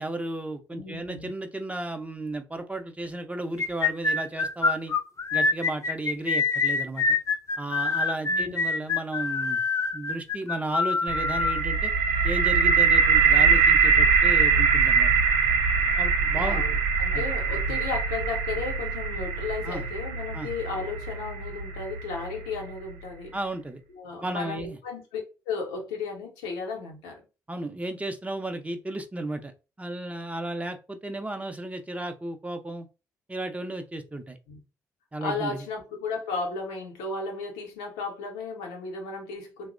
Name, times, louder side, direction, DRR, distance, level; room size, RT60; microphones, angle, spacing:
voice 1, 0.0-4.9 5.3-7.0 7.6-9.6 9.9-11.9 12.2-15.1 16.0-16.6 17.1-17.2 17.7-17.8 19.6-19.9 20.3-20.5 23.3-23.8 24.2-24.8 27.5-29.5 29.8-32.9 33.3-34.4 35.1-35.6, right 1 dB, 15° right, 0.6 m, -34 dB
voice 2, 0.7-1.3 8.3-8.9 16.3-23.3 23.9-25.2 25.5-27.2 34.5-34.6 35.2-39.7, left 4 dB, 80° left, 0.6 m, -34 dB
sound 1, 3.6-11.6, left 4 dB, 35° left, 0.5 m, -25 dB
sound 2, 11.1-22.9, right 5 dB, 75° right, 0.4 m, -23 dB
2.8 x 2.0 x 2.5 m
hypercardioid pair, 40°, 8 cm